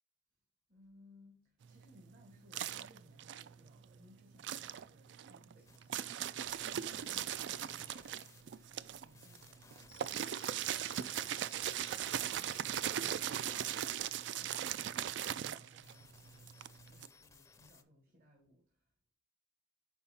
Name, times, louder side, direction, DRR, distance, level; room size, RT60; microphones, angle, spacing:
voice 1, 0.7-10.0 10.6-16.6 16.8-19.1, left 1 dB, 55° right, 1.5 m, -65 dB
sound 1, 1.6-4.0 4.3-17.1, right 10 dB, 70° right, 0.3 m, -39 dB
sound 2, 5.6-17.8, left 5 dB, 15° left, 0.4 m, -61 dB
5.4 x 4.7 x 4.2 m
head